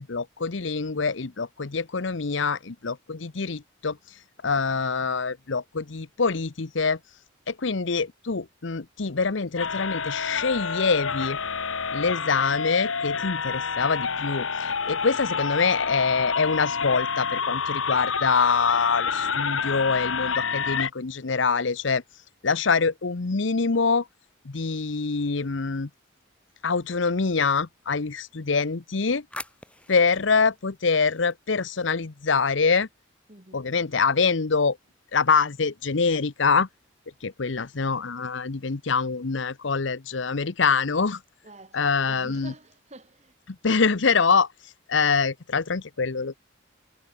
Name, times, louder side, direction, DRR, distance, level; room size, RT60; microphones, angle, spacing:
voice 1, 0.0-4.0 4.4-7.0 7.5-11.4 11.9-22.0 22.4-24.1 24.4-25.9 26.6-29.2 29.9-32.9 33.5-34.8 35.1-36.7 37.2-41.2 41.7-42.5 43.5-44.5 44.9-46.4, left 5 dB, 70° left, 0.9 m, -25 dB
sound 1, 9.6-20.9, left 5 dB, 90° left, 1.6 m, -28 dB
sound 2, 24.5-26.3 28.6-31.9, left 2 dB, 5° left, 2.9 m, -47 dB
voice 2, 33.3-33.7 41.4-43.3, right 2 dB, 35° right, 4.1 m, -47 dB
head